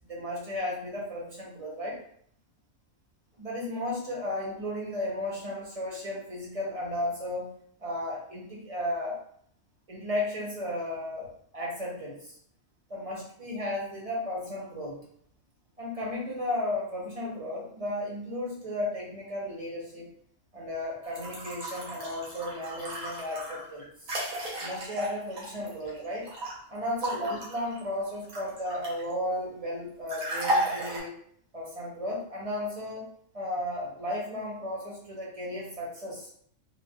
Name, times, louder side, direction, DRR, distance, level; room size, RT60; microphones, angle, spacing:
voice 1, 0.1-2.0 3.4-7.5 7.8-9.2 9.9-12.3 12.9-15.0 15.8-20.1 20.5-24.1 24.6-26.3 26.7-31.1 31.5-33.0 33.3-36.3, left 1 dB, 35° right, -4 dB, 0.8 m, -34 dB
sound 1, 21.0-26.5 27.0-29.1 30.1-31.0, right 1 dB, 90° right, 1.3 m, -34 dB
3.7 x 2.2 x 2.3 m, 0.63 s
omnidirectional pair, 1.4 m